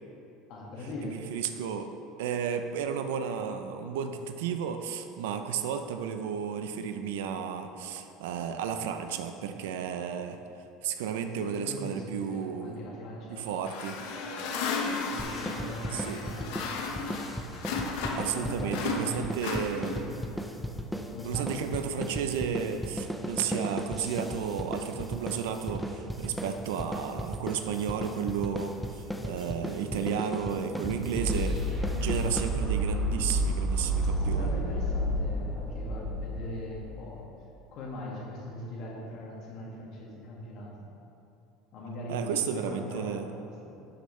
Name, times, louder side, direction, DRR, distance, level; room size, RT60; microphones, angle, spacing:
voice 1, 0.5-1.2 11.1-13.6 14.8-17.3 18.3-19.4 19.9-20.2 21.1-21.6 33.1-33.3 34.0-37.3 37.7-40.9 41.7-43.8, left 1 dB, 55° left, -3 dB, 2.2 m, -41 dB
voice 2, 1.0-1.9 2.2-10.4 10.8-12.8 13.3-14.0 15.9-16.2 18.2-20.0 21.2-31.6 31.9-34.5 42.1-43.3, right 7 dB, 85° right, 7 dB, 0.6 m, -33 dB
sound 1, 13.6-18.4 18.7-20.2, left 4 dB, 75° left, 1.1 m, -34 dB
sound 2, 15.2-33.0, equal, 5° left, 0.6 m, -37 dB
sound 3, 28.9-37.0, right 1 dB, 15° right, 1.7 m, -31 dB
12.0 x 6.6 x 3.3 m, 2.8 s
supercardioid pair, 115°, 0 cm